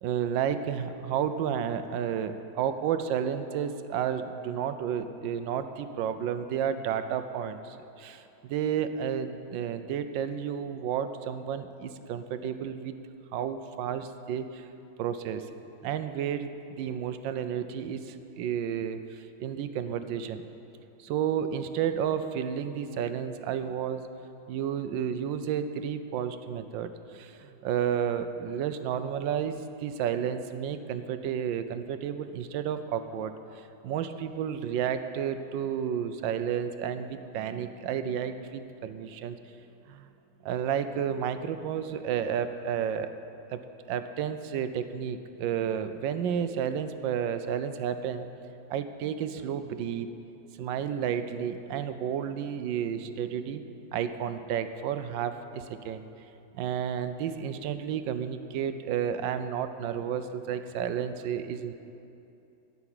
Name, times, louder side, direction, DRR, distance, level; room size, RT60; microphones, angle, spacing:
voice 1, 0.0-13.0 13.3-14.7 15.0-15.4 15.8-20.4 21.0-24.0 24.5-39.4 39.9-40.1 40.4-43.1 43.5-43.6 43.9-48.3 48.7-50.1 50.6-53.6 53.9-56.0 56.5-61.7, right 8 dB, 90° right, 10 dB, 1.4 m, -31 dB
13.5 x 5.9 x 9.0 m, 2.8 s
omnidirectional pair, 2.0 m